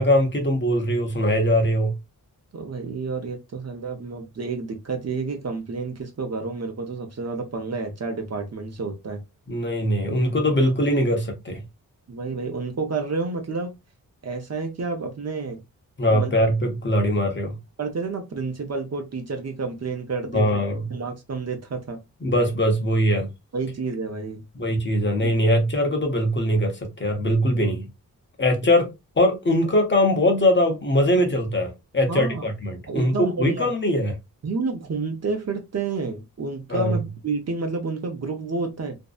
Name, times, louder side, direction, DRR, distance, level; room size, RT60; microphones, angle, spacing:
voice 1, 0.0-1.9 9.5-11.6 16.0-17.6 20.3-20.8 22.2-23.3 24.5-27.8 28.4-34.1 36.7-37.0, equal, 30° left, 0.9 m, -21 dB
voice 2, 2.5-9.2 12.1-13.7 14.2-15.6 16.1-16.3 17.8-20.4 20.9-22.0 23.5-24.4 25.2-25.3 32.1-32.5 32.9-33.7 34.4-39.0, right 4 dB, 45° right, 0.7 m, -30 dB
2.6 x 2.1 x 2.4 m
cardioid pair, 70°, 36 cm